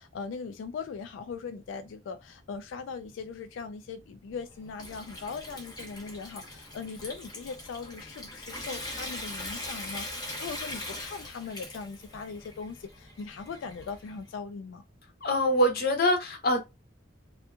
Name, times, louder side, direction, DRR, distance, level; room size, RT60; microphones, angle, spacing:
voice 1, 0.0-14.8, left 5 dB, 85° left, 0.3 m, -40 dB
Water tap faucet / Sink (filling or washing) / Trickle dribble, 4.3-14.3, left 1 dB, 20° left, 0.8 m, -41 dB
voice 2, 15.2-16.6, equal, 55° left, 0.7 m, -24 dB
2.7 x 2.4 x 2.3 m
head